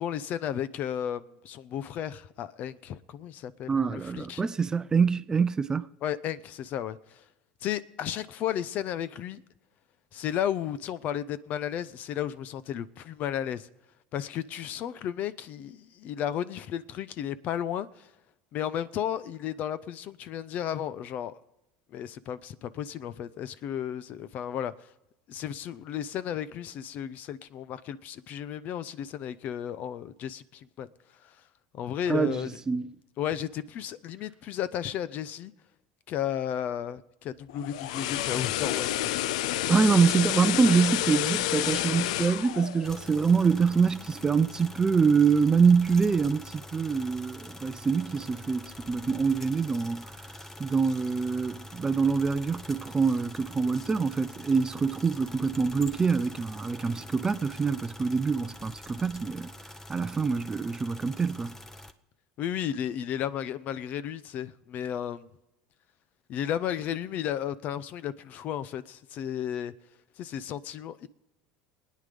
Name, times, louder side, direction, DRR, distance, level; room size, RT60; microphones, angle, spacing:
voice 1, 0.0-4.4 6.0-7.2 7.6-9.4 10.1-13.7 14.1-18.1 18.5-21.4 21.9-24.7 25.3-30.9 31.2-31.3 31.7-32.6 33.2-35.5 36.1-39.1 62.4-65.3 66.3-69.7 70.2-71.1, left 10 dB, 50° left, 0.8 m, -33 dB
voice 2, 3.7-5.9 32.1-32.9 39.7-50.1 50.6-59.5 59.9-61.6, right 5 dB, 20° right, 0.6 m, -25 dB
sound 1, 37.5-43.7 44.0-44.2, left 14 dB, 80° left, 0.4 m, -30 dB
sound 2, 42.8-61.9, left 1 dB, 10° left, 1.0 m, -45 dB
21.5 x 9.6 x 5.2 m
supercardioid pair, 100°, 3 cm